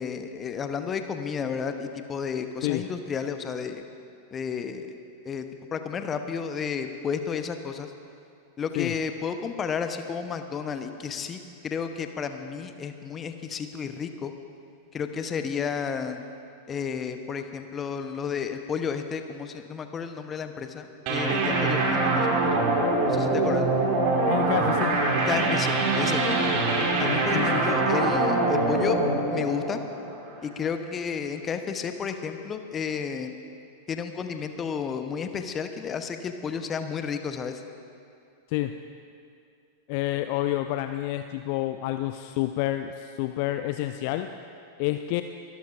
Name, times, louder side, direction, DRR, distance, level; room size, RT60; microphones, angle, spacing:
voice 1, 0.0-3.8 4.3-4.9 5.2-7.9 8.6-14.3 14.9-16.2 16.7-22.5 23.0-23.7 25.3-26.5 27.0-29.0 29.3-29.8 30.4-33.3 33.9-37.6, left 6 dB, 25° left, 8 dB, 0.9 m, -32 dB
sound 1, 21.1-30.4, right 2 dB, 45° right, 2.1 m, -24 dB
voice 2, 24.3-24.9 27.3-27.9 38.5-38.7 39.9-44.3 44.8-45.2, left 15 dB, 45° left, 8 dB, 0.4 m, -29 dB
23.5 x 12.5 x 2.5 m, 2.5 s
figure-of-eight pair, 90°, 0 cm